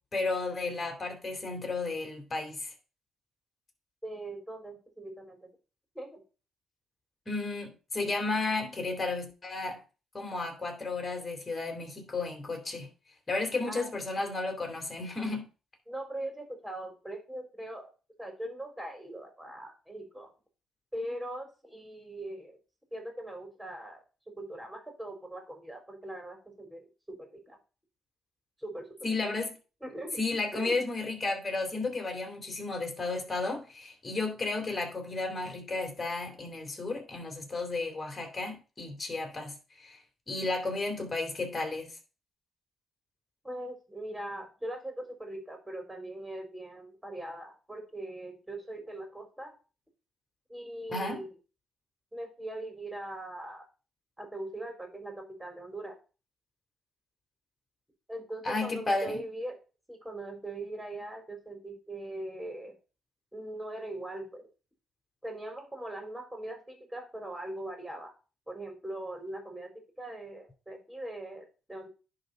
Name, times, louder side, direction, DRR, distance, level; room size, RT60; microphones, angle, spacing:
voice 1, 0.1-2.7 7.2-9.8 10.1-12.9 13.3-15.5 29.0-29.5 30.2-42.0 50.9-51.2 58.4-59.2, left 3 dB, 30° left, 3.4 m, -33 dB
voice 2, 4.0-5.5 5.9-6.2 13.7-13.9 15.9-17.9 18.2-20.3 20.9-22.6 22.9-24.0 24.4-27.6 28.6-28.9 29.2-29.3 29.8-30.2 30.5-30.8 43.4-49.5 50.5-51.3 52.1-53.7 54.2-56.0 58.1-59.6 59.9-62.8 63.3-64.5 65.2-68.1 68.5-71.9, right 1 dB, 10° right, 4.0 m, -41 dB
10.5 x 4.0 x 5.5 m
hypercardioid pair, 40°, 0 cm